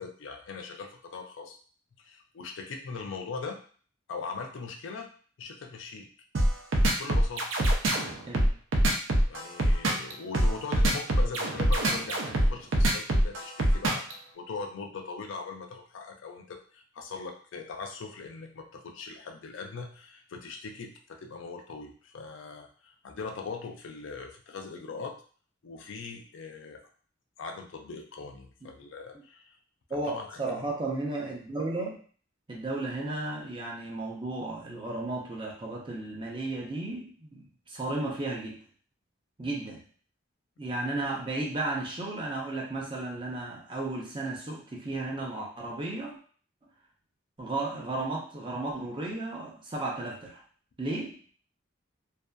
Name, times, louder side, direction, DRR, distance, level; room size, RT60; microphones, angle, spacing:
voice 1, 0.0-1.6 2.0-3.6 4.1-5.1 5.4-6.1 7.0-7.5 9.3-14.0 14.3-25.2 25.6-26.8 27.4-29.5 29.9-30.7 39.4-39.5, left 4 dB, 70° left, 3 dB, 0.4 m, -40 dB
sound 1, 6.3-14.1, right 1 dB, 75° right, 0.5 m, -24 dB
voice 2, 29.9-32.0 32.5-38.6 39.4-39.8 40.6-46.2 47.4-50.4 50.8-51.3, right 2 dB, 25° right, -2 dB, 0.5 m, -34 dB
2.6 x 2.3 x 2.2 m, 0.44 s
head